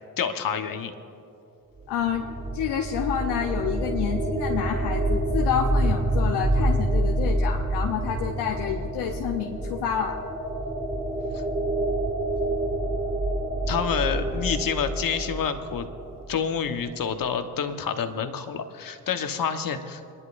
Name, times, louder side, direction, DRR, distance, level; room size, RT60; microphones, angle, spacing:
voice 1, 0.2-0.9 11.3-11.4 13.7-15.9 16.3-20.1, left 7 dB, 50° left, 7 dB, 1.3 m, -28 dB
sound 1, 1.8-16.6, right 1 dB, 20° right, 2.2 m, -27 dB
voice 2, 1.9-2.3 2.5-10.2, left 8 dB, 65° left, 3 dB, 0.9 m, -28 dB
28.0 x 11.0 x 2.6 m, 2.4 s
hypercardioid pair, 40°, 44 cm